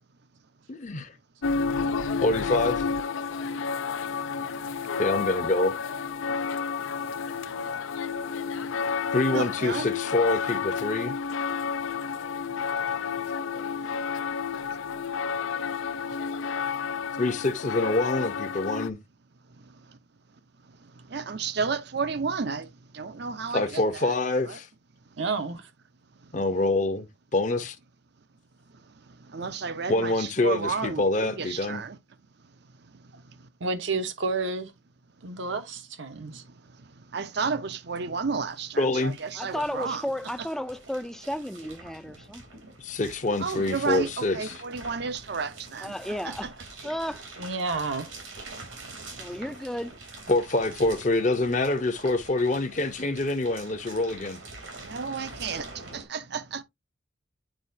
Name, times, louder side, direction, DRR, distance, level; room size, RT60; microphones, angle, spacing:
voice 1, 0.7-1.2 1.7-1.9 2.2-2.9 4.9-5.8 9.1-11.1 17.2-19.0 23.5-24.7 26.3-27.1 27.3-27.8 29.9-31.8 38.8-39.2 42.8-44.6 50.3-54.4, left 2 dB, 40° left, 0.7 m, -26 dB
sound 1, 1.4-18.9, left 6 dB, 75° left, 0.5 m, -30 dB
voice 2, 9.3-9.9 21.1-22.7 22.9-23.8 24.5-24.6 29.3-32.0 37.1-40.0 43.4-45.9 46.2-46.5 54.9-55.7 55.9-56.6, right 5 dB, 55° right, 0.6 m, -32 dB
voice 3, 25.2-25.7 33.6-34.7 35.2-36.4 47.4-48.1, right 3 dB, 70° right, 1.0 m, -30 dB
sound 2, 37.3-37.4 37.6-56.0, right 3 dB, 90° right, 3.2 m, -45 dB
voice 4, 39.4-42.6 45.8-46.5 46.8-47.3 49.2-50.0 55.5-55.6, left 1 dB, ahead, 0.4 m, -33 dB
9.0 x 4.3 x 2.7 m
head